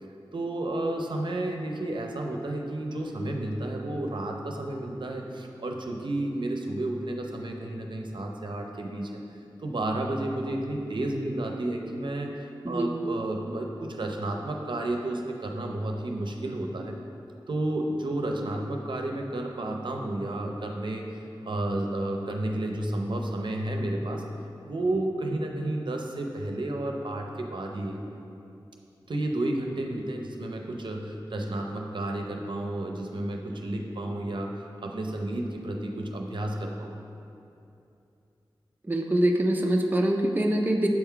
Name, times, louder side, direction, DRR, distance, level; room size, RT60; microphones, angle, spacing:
voice 1, 0.3-9.2 9.6-17.0 17.5-21.2 21.4-24.2 24.6-28.0 29.1-37.0, right 1 dB, 60° right, 2 dB, 0.7 m, -31 dB
voice 2, 12.6-13.0 38.9-40.9, right 1 dB, 20° right, 1 dB, 0.5 m, -24 dB
7.6 x 3.7 x 4.5 m, 2.7 s
cardioid pair, 55°, 9 cm